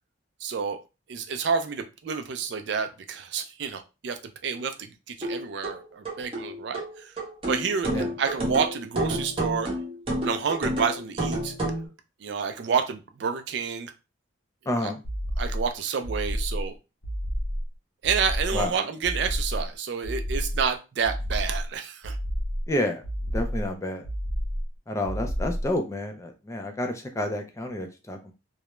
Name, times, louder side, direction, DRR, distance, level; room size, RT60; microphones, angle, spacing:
voice 1, 0.4-0.8 1.1-4.2 4.4-7.1 7.5-9.7 10.2-11.5 12.2-13.9 14.8-14.9 15.4-16.7 18.0-22.2, right 6 dB, 60° right, 7 dB, 0.4 m, -29 dB
sound 1, 5.2-11.9, right 1 dB, 25° right, 0.7 m, -30 dB
voice 2, 14.7-15.0 18.5-18.7 22.7-23.0 23.3-24.1 24.9-28.3, left 1 dB, 15° left, 4 dB, 0.3 m, -29 dB
sound 2, 15.0-15.7 16.0-16.7 17.0-17.7 18.0-18.7 19.0-19.7 20.0-20.7 21.0-21.7 22.0-22.7 23.0-23.7 24.0-24.7 25.0-25.7, equal, 85° left, 0.6 m, -30 dB
2.3 x 2.0 x 3.0 m, 0.28 s
head